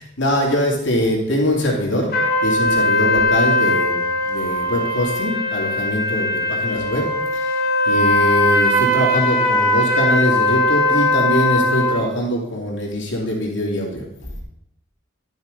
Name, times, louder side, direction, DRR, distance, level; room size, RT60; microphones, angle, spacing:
voice 1, 0.0-2.2 2.4-4.0 4.2-7.1 7.3-14.4, equal, 70° left, -2 dB, 2.7 m, -22 dB
sound 1, 2.1-12.0, left 1 dB, 50° left, 2.5 m, -19 dB
12.0 x 6.3 x 5.2 m, 0.83 s
head